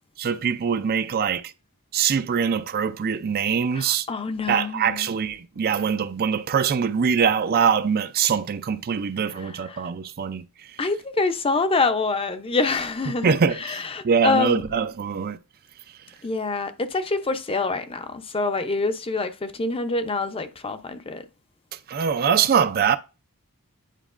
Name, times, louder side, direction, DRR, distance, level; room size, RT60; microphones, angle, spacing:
voice 1, 0.2-1.5 1.9-4.1 4.5-10.4 13.1-15.4 21.9-23.0, right 7 dB, 45° right, 0.4 m, -23 dB
voice 2, 3.8-5.1 10.8-13.3 13.6-14.6 16.2-21.2, left 3 dB, 25° left, 0.5 m, -26 dB
9.1 x 4.4 x 2.4 m
head